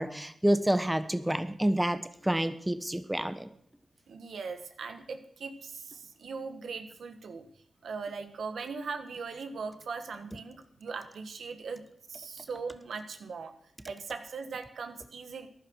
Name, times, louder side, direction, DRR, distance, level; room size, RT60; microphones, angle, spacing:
voice 1, 0.0-3.5, right 1 dB, 10° right, 11 dB, 1.2 m, -28 dB
voice 2, 4.1-7.5 7.8-13.6 13.9-15.5, right 5 dB, 80° right, 8 dB, 1.6 m, -40 dB
14.5 x 11.0 x 6.4 m, 0.65 s
cardioid pair, 60°, 0 cm